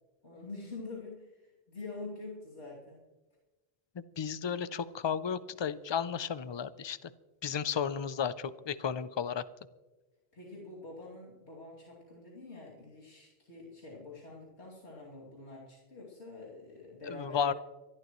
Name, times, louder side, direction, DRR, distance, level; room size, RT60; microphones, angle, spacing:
voice 1, 0.2-3.0 10.3-17.5, left 3 dB, 75° left, -6 dB, 3.0 m, -46 dB
voice 2, 4.2-7.1 7.4-9.4 17.0-17.5, left 7 dB, 50° left, 16 dB, 0.3 m, -33 dB
24.5 x 12.0 x 3.1 m, 1.2 s
omnidirectional pair, 1.1 m